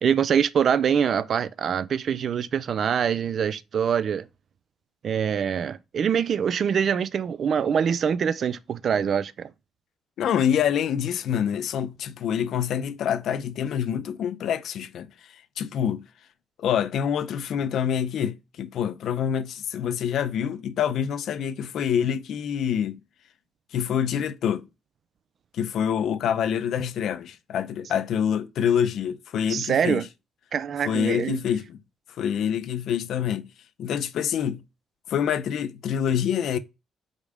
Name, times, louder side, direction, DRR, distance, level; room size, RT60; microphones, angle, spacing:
voice 1, 0.0-4.3 5.0-9.5 29.5-30.0 30.5-31.4, right 7 dB, 55° right, 0.4 m, -24 dB
voice 2, 10.2-15.1 15.6-16.0 16.6-23.0 23.7-24.7 25.5-30.0 30.9-31.8 32.2-33.5 33.8-34.6 35.1-36.6, left 8 dB, 70° left, 0.5 m, -26 dB
5.1 x 2.1 x 4.7 m
cardioid pair, 90°, 0 cm